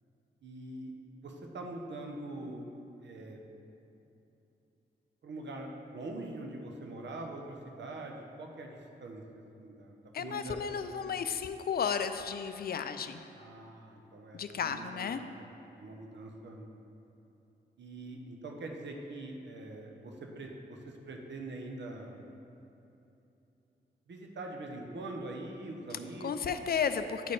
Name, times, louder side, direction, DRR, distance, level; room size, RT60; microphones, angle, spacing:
voice 1, 0.4-0.9 1.2-2.7 3.0-3.4 5.2-9.2 9.6-11.1 13.3-15.1 15.4-15.5 15.8-16.7 17.8-22.2 24.1-26.7, right 2 dB, 65° right, 2 dB, 0.9 m, -43 dB
voice 2, 10.1-13.2 14.3-15.2 26.2-27.3, left 7 dB, 50° left, 10 dB, 0.4 m, -33 dB
10.0 x 4.1 x 3.3 m, 2.9 s
cardioid pair, 65°, 20 cm